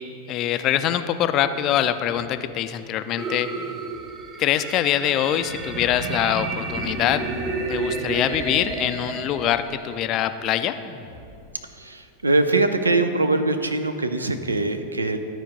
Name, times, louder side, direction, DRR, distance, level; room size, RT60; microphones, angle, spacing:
voice 1, 0.3-3.5 4.4-7.2 7.7-10.7, left 11 dB, 35° left, 11 dB, 0.4 m, -24 dB
sound 1, 1.4-2.6 3.3-4.4 5.2-6.3 7.1-8.1 9.0-9.9 10.8-11.7, equal, ahead, 0.9 m, -48 dB
sound 2, 3.2-10.2, right 3 dB, 25° right, 0.9 m, -31 dB
voice 2, 11.7-15.2, right 2 dB, 80° right, 8 dB, 0.5 m, -22 dB
12.0 x 4.5 x 5.1 m, 2.6 s
figure-of-eight pair, 90°, 0 cm